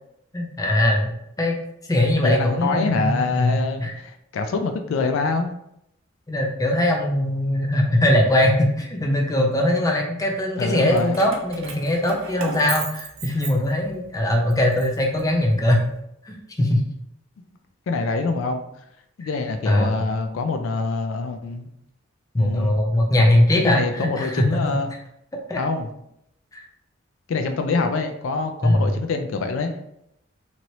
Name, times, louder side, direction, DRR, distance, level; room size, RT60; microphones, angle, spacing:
voice 1, 0.3-1.1 1.4-1.5 1.9-3.9 6.3-15.8 16.2-16.8 19.2-19.3 19.7-20.0 22.3-24.8 25.5-25.6 26.5-26.6 28.6-28.9, left 1 dB, 15° left, 1 dB, 0.5 m, -21 dB
voice 2, 2.2-5.5 10.6-11.2 17.9-18.6 19.2-21.7 22.4-22.8 23.5-24.9 25.6-25.9 27.3-29.8, left 3 dB, 70° left, 6 dB, 0.3 m, -25 dB
Keys jangling, 10.9-14.1 14.5-15.8, right 5 dB, 85° right, 0.6 m, -36 dB
3.0 x 2.9 x 2.7 m, 0.78 s
head